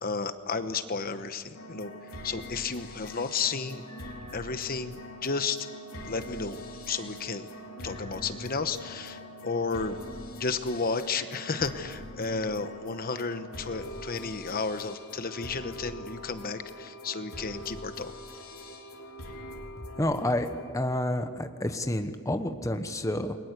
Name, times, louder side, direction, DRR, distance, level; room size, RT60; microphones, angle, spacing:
voice 1, 0.0-1.9 2.2-3.8 4.3-5.7 6.1-6.6 6.9-7.5 7.8-10.0 10.4-18.1, left 4 dB, 45° left, 10 dB, 1.0 m, -32 dB
sound 1, 1.5-20.7, left 1 dB, 80° left, 3.5 m, -43 dB
voice 2, 20.0-23.4, left 1 dB, 15° left, 7 dB, 1.1 m, -29 dB
29.0 x 22.0 x 8.3 m, 2.1 s
head